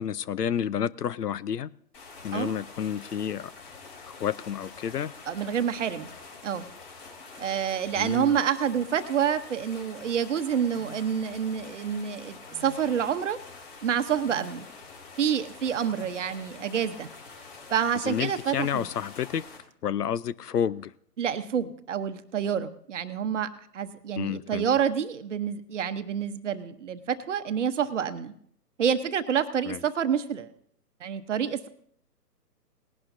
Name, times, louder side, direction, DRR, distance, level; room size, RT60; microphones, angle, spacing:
voice 1, 0.0-1.7 2.2-3.5 4.2-5.1 8.0-8.3 18.1-19.4 19.8-20.9 24.2-24.7 29.7-29.8, left 8 dB, 70° left, 19 dB, 0.7 m, -30 dB
sound 1, 1.9-19.6, left 4 dB, 40° left, 4.7 m, -46 dB
voice 2, 5.3-6.1 6.4-6.7 7.4-13.4 13.8-14.7 15.2-17.1 17.7-18.9 21.2-28.3 28.8-30.5 31.0-31.7, right 8 dB, 45° right, 10 dB, 1.0 m, -28 dB
sound 2, 10.8-11.0 12.5-12.8 14.2-14.5 15.9-16.2, left 1 dB, ahead, 0.6 m, -47 dB
19.5 x 11.0 x 2.7 m, 0.65 s
figure-of-eight pair, 140°, 49 cm